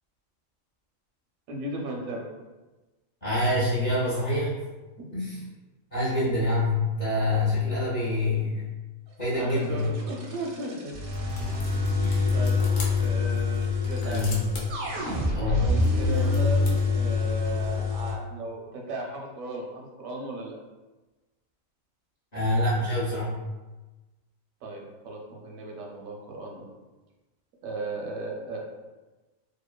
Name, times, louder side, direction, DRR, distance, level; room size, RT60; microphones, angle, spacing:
voice 1, 1.5-2.3 5.0-5.5 9.3-11.0 12.3-12.7 12.9-14.3 15.3-20.6 24.6-26.7 27.6-28.7, right 2 dB, 85° right, -1 dB, 1.0 m, -36 dB
voice 2, 3.2-4.5 5.1-5.4 5.9-8.6 9.2-9.9 12.0-12.3 14.0-14.4 15.3-15.6 22.3-23.3, left 2 dB, 50° left, -9 dB, 0.5 m, -26 dB
sound 1, 9.5-18.1, left 3 dB, 65° right, 0.6 m, -26 dB
sound 2, 11.1-16.8, left 2 dB, 75° left, 1.0 m, -42 dB
2.9 x 2.1 x 2.2 m, 1.2 s
omnidirectional pair, 1.4 m